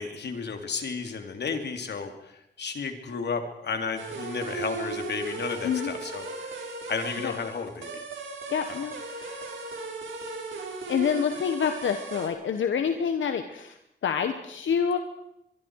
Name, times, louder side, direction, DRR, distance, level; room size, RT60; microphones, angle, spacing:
voice 1, 0.0-6.6 6.9-8.0 8.7-8.8, left 5 dB, 60° left, 5 dB, 3.1 m, -33 dB
sound 1, 4.0-12.3, right 3 dB, 85° right, 4.8 m, -37 dB
voice 2, 8.5-9.5 10.9-13.8 14.0-15.0, left 7 dB, 85° left, 7 dB, 1.4 m, -27 dB
24.5 x 23.0 x 4.8 m, 0.81 s
wide cardioid pair, 130°, 19 cm